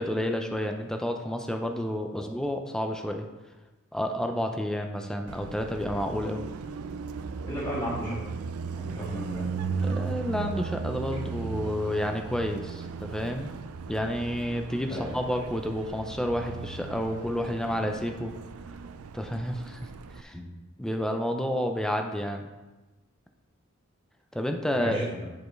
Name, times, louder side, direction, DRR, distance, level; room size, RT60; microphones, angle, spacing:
voice 1, 0.0-3.3 3.9-6.5 9.8-13.5 13.9-18.3 19.1-19.8 20.2-20.4 20.8-22.5 24.3-25.1, equal, 5° left, 4 dB, 0.4 m, -30 dB
Car passing by, 5.3-20.2, right 5 dB, 90° right, 0.4 m, -36 dB
voice 2, 7.4-8.2 8.7-9.4 14.9-15.2 20.3-20.4 24.8-25.3, equal, 25° left, -13 dB, 2.1 m, -34 dB
10.0 x 4.5 x 3.2 m, 1.1 s
head